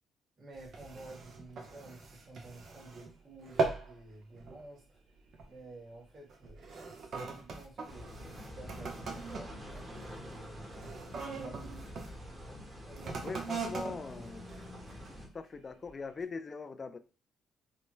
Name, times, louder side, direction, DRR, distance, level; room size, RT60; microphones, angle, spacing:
voice 1, 0.4-5.0 5.5-10.6 11.3-11.9 12.8-13.4 13.8-14.3, right 2 dB, 40° right, -1 dB, 1.5 m, -52 dB
sound 1, 0.5-3.1 3.4-4.0 4.3-4.7 5.3-5.6 6.3-12.1 12.9-15.3 15.8-15.9, right 4 dB, 60° right, 0.7 m, -40 dB
sound 2, 7.9-15.3, left 1 dB, 20° right, 1.1 m, -47 dB
voice 2, 13.2-14.5 15.3-17.0, left 4 dB, 35° left, 9 dB, 0.3 m, -41 dB
3.3 x 2.1 x 3.0 m, 0.34 s
cardioid pair, 90°, 0 cm